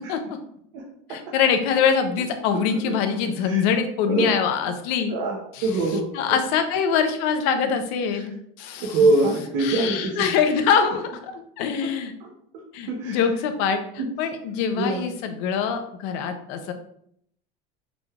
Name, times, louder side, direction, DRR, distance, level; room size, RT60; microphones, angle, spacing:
voice 1, 1.1-5.1 5.5-8.3 8.6-9.0 9.6-12.1 12.7-16.7, left 7 dB, 65° left, 7 dB, 0.7 m, -24 dB
voice 2, 5.1-6.1 8.1-8.2 8.8-10.3 11.8-11.9 12.2-12.3 12.9-13.2 14.0-14.1 14.7-15.0, right 2 dB, 65° right, -3 dB, 0.9 m, -24 dB
6.0 x 3.3 x 2.4 m, 0.69 s
cardioid pair, 175°, 18 cm